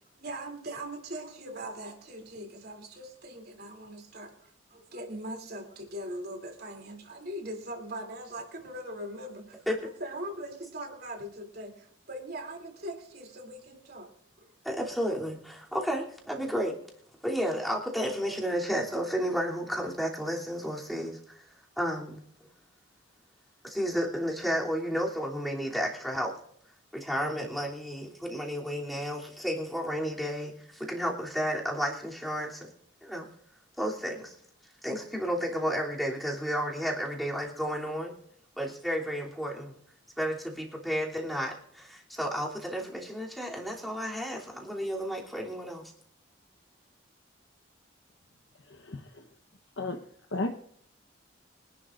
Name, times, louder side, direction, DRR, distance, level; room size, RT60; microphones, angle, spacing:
voice 1, 0.2-9.7 10.0-14.1 14.4-14.5, right 1 dB, 55° right, 3.1 m, -41 dB
voice 2, 14.6-16.7 17.2-21.4 21.8-22.2 23.6-26.3 26.9-32.7 33.0-33.3 33.8-34.3 34.8-38.1 38.6-39.7 40.2-45.9, equal, ahead, 3.1 m, -32 dB
voice 3, 48.7-49.3 49.8-50.0 50.3-50.5, left 2 dB, 85° left, 1.1 m, -34 dB
24.5 x 11.5 x 2.6 m
head